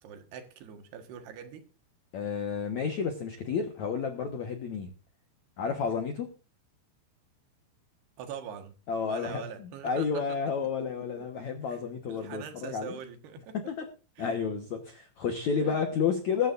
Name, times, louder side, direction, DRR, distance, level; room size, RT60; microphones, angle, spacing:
voice 1, 0.0-1.7 8.2-8.7 9.0-11.8 12.1-13.6 14.2-14.4 15.6-15.8, right 8 dB, 70° right, 3.3 m, -44 dB
voice 2, 2.1-4.9 5.6-6.3 8.9-9.4 9.8-13.0 13.7-13.8 14.2-16.5, left 6 dB, 70° left, 1.7 m, -31 dB
21.5 x 11.5 x 2.6 m
omnidirectional pair, 5.2 m